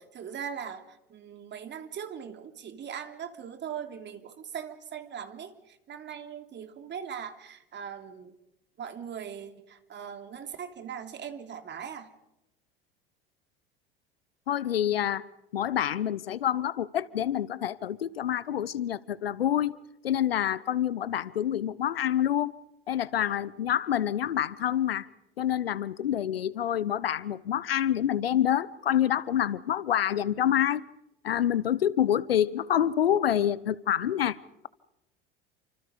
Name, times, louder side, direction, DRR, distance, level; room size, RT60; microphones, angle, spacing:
voice 1, 0.0-8.4 8.8-12.1, right 8 dB, 40° right, 3.2 m, -40 dB
voice 2, 14.5-15.3 15.5-19.8 20.0-22.6 22.9-25.1 25.4-30.9 31.2-34.4, left 10 dB, 80° left, 1.0 m, -27 dB
29.5 x 26.0 x 5.2 m
hypercardioid pair, 75°, 29 cm